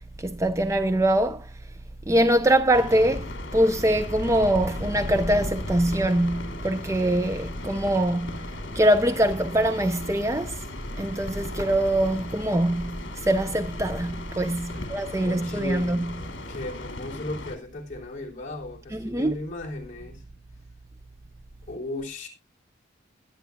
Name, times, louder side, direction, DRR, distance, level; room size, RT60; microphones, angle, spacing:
voice 1, 0.2-1.5 2.1-10.6 11.0-16.1 18.9-19.4, right 1 dB, 15° right, 0.5 m, -23 dB
sound 1, 2.7-17.6, left 1 dB, 70° left, 2.5 m, -36 dB
voice 2, 14.7-15.9 16.5-20.2 21.7-22.3, left 2 dB, 40° left, 3.3 m, -36 dB
21.5 x 8.9 x 2.2 m
head